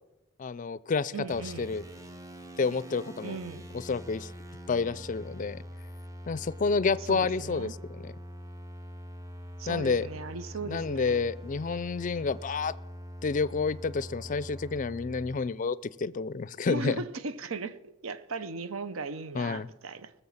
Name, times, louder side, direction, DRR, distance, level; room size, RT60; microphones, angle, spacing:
voice 1, 0.4-1.8 2.6-3.4 3.7-4.3 4.7-5.6 6.3-8.1 9.7-10.1 10.7-12.7 13.2-17.0 19.3-19.7, left 4 dB, 40° left, 0.4 m, -29 dB
voice 2, 1.1-1.7 3.2-3.6 7.1-7.7 9.6-11.2 16.7-20.1, right 3 dB, 80° right, 0.7 m, -37 dB
sound 1, 1.3-15.4, equal, 15° right, 0.7 m, -44 dB
20.5 x 7.1 x 7.2 m
head